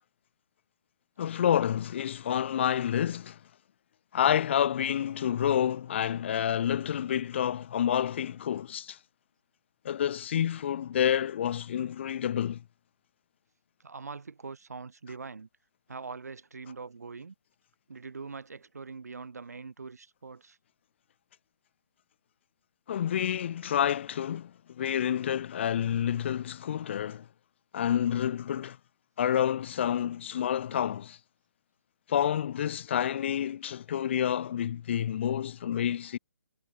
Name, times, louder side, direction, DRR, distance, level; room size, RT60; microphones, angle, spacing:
voice 1, 1.2-3.4 4.1-9.0 9.8-12.6 22.9-27.2 27.7-28.8 29.2-31.2 32.1-36.2, left 9 dB, 40° left, 0.8 m, -29 dB
voice 2, 13.8-15.5 15.9-17.3 17.9-20.6, right 4 dB, 65° right, 4.7 m, -43 dB
figure-of-eight pair, 135°, 9 cm